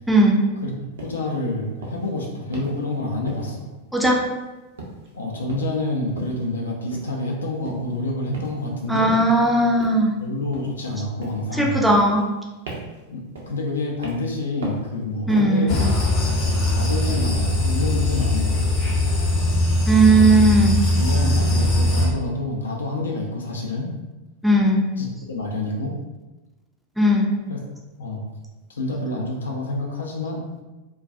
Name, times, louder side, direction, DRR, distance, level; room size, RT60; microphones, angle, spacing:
voice 1, 0.1-0.4 3.9-4.2 8.9-10.1 11.6-12.3 15.3-15.8 19.9-20.8 24.4-24.8 27.0-27.3, right 1 dB, ahead, -2 dB, 0.4 m, -17 dB
voice 2, 1.0-3.7 5.1-9.1 10.2-11.8 13.1-16.0 16.7-18.8 20.1-20.5 20.9-23.9 25.0-26.0 27.5-27.6 28.0-28.2 28.7-30.5, left 2 dB, 70° left, 0 dB, 0.4 m, -28 dB
sound 1, 1.0-1.2 1.8-2.1 2.5-2.8 3.3-3.7 4.0-4.5 4.8-5.1 5.5-5.8 6.2-6.4 6.9-7.2 7.6-7.9 8.3-8.7 9.1-9.4 9.8-10.1 10.5-10.9 11.2-11.5 11.9-12.4 12.7-13.0 13.3-13.7 14.0-14.3 14.6-14.9 15.3-15.6, right 2 dB, 65° right, 0.5 m, -37 dB
sound 2, 15.7-22.1, left 1 dB, 40° left, 0.7 m, -21 dB
2.3 x 2.2 x 2.5 m, 1.1 s
figure-of-eight pair, 90°, 0 cm